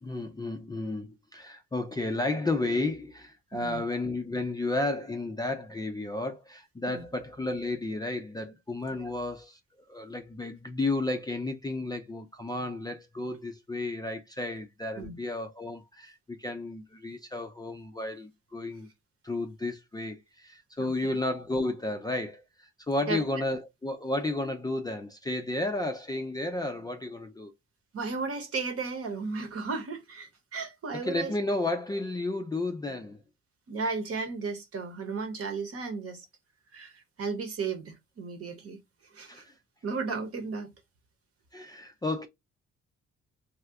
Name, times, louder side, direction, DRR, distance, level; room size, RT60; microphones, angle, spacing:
voice 1, 0.0-9.6 9.9-18.9 19.2-27.5 30.9-33.2 39.3-39.5 41.5-42.3, left 2 dB, 15° left, 0.4 m, -32 dB
voice 2, 3.5-3.8 6.9-7.0 9.0-9.1 15.0-15.1 20.8-21.2 23.1-23.2 27.9-31.3 33.7-36.3 36.7-38.8 39.1-39.4 39.8-40.7, right 4 dB, 50° right, 1.0 m, -34 dB
2.7 x 2.3 x 3.4 m
cardioid pair, 90°, 30 cm